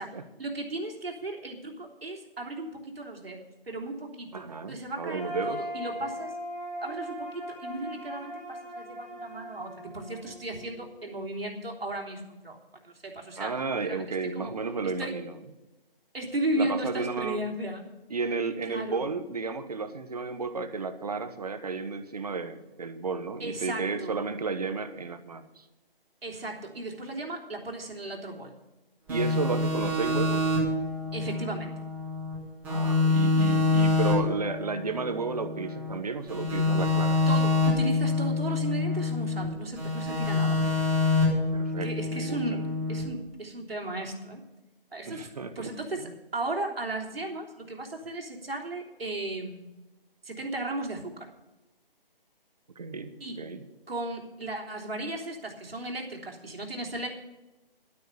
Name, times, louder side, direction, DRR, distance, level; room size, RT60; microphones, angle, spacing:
voice 1, 0.0-6.3 6.8-12.6 12.8-13.6 13.8-14.0 14.3-14.5 15.0-15.1 16.1-17.8 18.6-19.0 23.4-24.1 26.2-28.5 31.1-31.7 37.3-40.6 41.8-42.6 42.9-44.4 44.9-45.3 45.5-49.7 50.2-51.3 53.2-53.4 53.9-57.1, right 2 dB, 80° right, 1 dB, 3.3 m, -35 dB
voice 2, 4.3-5.6 13.4-15.3 16.6-17.4 18.1-25.6 29.1-30.5 32.7-37.2 41.5-42.6 45.1-45.7 46.0-46.1 52.8-53.1 53.4-53.6, right 4 dB, 40° right, 10 dB, 1.1 m, -33 dB
sound 1, 5.2-11.1, equal, 15° left, 3.1 m, -39 dB
sound 2, 29.1-32.3 32.6-35.9 36.3-39.5 39.8-43.0, left 3 dB, 5° right, 2.0 m, -26 dB
12.0 x 9.5 x 6.9 m, 1.0 s
hypercardioid pair, 170°, 29 cm